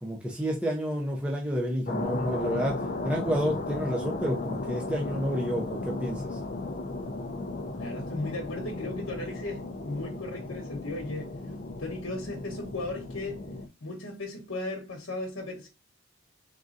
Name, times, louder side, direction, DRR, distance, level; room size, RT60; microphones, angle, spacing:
voice 1, 0.0-6.4, equal, 5° right, 0.6 m, -30 dB
sound 1, 1.9-13.7, left 2 dB, 40° left, 0.5 m, -35 dB
voice 2, 7.8-11.4 11.8-13.4 13.8-15.7, left 2 dB, 70° left, 1.1 m, -36 dB
3.8 x 3.7 x 2.5 m
head